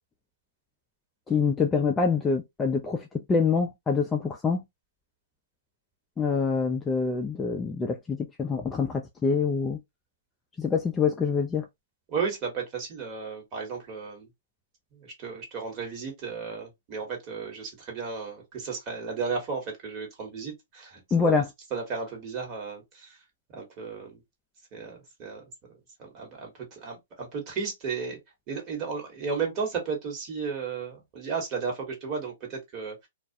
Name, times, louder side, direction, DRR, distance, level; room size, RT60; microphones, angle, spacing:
voice 1, 1.3-4.6 6.2-9.8 10.6-11.7 21.1-21.5, left 5 dB, 15° left, 0.3 m, -25 dB
voice 2, 12.1-14.3 14.9-21.4 21.7-23.2 23.5-24.2 24.7-25.4 26.0-28.2 28.5-33.1, right 5 dB, 30° right, 1.2 m, -34 dB
2.3 x 2.1 x 2.6 m
hypercardioid pair, 135°, 0 cm